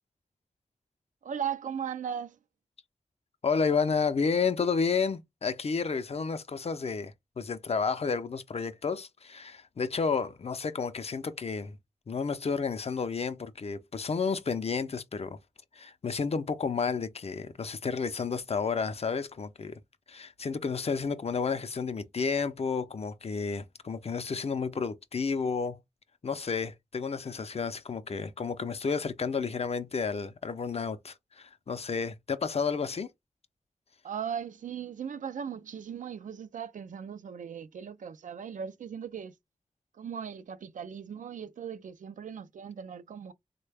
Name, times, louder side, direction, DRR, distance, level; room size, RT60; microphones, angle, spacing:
voice 1, 1.2-2.4 34.0-39.3 39.9-43.3, right 8 dB, 80° right, 0.4 m, -38 dB
voice 2, 3.4-11.8 12.1-15.4 15.7-19.8 20.1-25.8 26.2-33.1, left 5 dB, 50° left, 0.5 m, -31 dB
3.2 x 2.2 x 3.3 m
cardioid pair, 45°, 13 cm